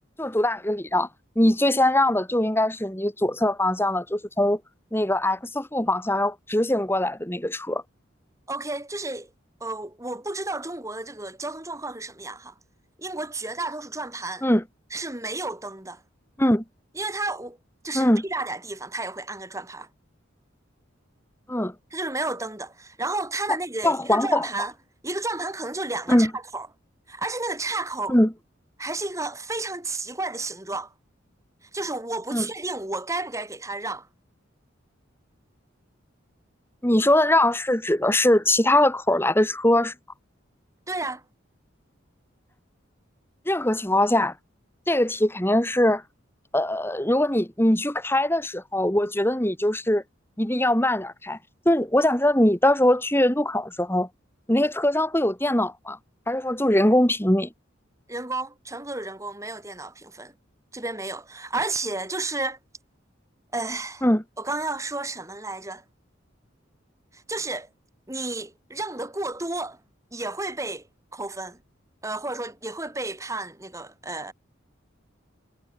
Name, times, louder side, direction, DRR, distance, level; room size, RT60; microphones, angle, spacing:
voice 1, 0.2-1.1 1.4-4.6 4.9-7.8 14.4-14.6 16.4-16.6 17.9-18.2 21.5-21.7 23.8-24.5 26.1-26.3 28.1-28.3 32.3-32.5 36.8-39.9 43.5-44.3 44.9-46.0 46.5-50.0 50.4-51.4 51.6-54.1 54.5-56.0 56.3-57.5 64.0-64.2, left 1 dB, 10° left, 2.8 m, -22 dB
voice 2, 8.5-9.3 9.6-12.5 13.0-14.5 14.9-16.0 17.0-17.6 17.8-19.9 21.9-24.7 25.0-26.7 27.1-28.2 28.8-30.9 31.6-34.1 40.9-41.2 58.1-60.3 60.7-62.6 63.5-64.0 64.4-65.8 67.1-67.7 68.1-69.8 70.1-70.9 71.1-71.6 72.0-74.3, right 2 dB, 15° right, 2.6 m, -32 dB
head